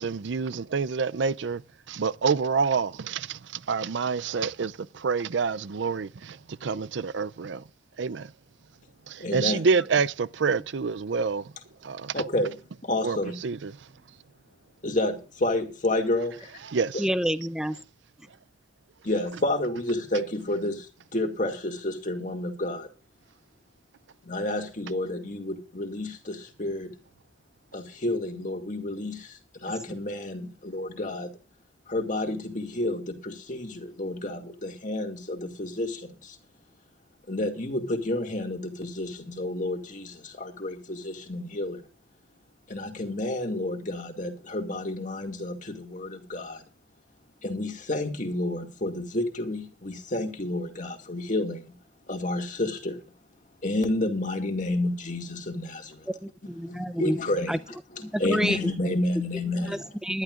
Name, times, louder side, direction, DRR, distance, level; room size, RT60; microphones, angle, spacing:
voice 1, 0.0-1.6 1.9-7.7 8.0-8.3 9.1-11.5 11.8-12.2 13.0-13.9 16.6-17.0, right 5 dB, 70° right, 0.5 m, -28 dB
voice 2, 9.2-9.6 12.1-12.5 12.8-13.4 14.8-16.5 19.0-20.9 21.1-22.9 24.2-26.9 27.7-31.3 31.9-36.4 37.3-41.8 42.7-46.6 47.4-51.7 52.1-53.0 53.6-56.1 56.7-57.6 57.9-59.9, left 1 dB, 45° left, 2.2 m, -30 dB
voice 3, 17.0-17.8 56.1-57.2 57.5-57.6 58.0-58.6 59.6-60.2, equal, 5° right, 0.6 m, -28 dB
21.0 x 11.5 x 2.5 m
head